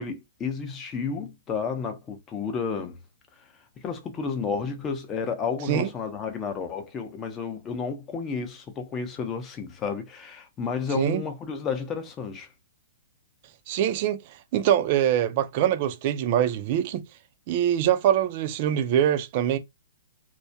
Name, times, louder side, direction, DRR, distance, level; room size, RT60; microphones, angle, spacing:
voice 1, 0.0-3.0 3.8-12.5, left 5 dB, 20° left, 0.6 m, -31 dB
voice 2, 13.7-17.0 17.5-19.6, right 10 dB, 45° right, 0.4 m, -24 dB
2.3 x 2.1 x 2.6 m
hypercardioid pair, 140°, 0 cm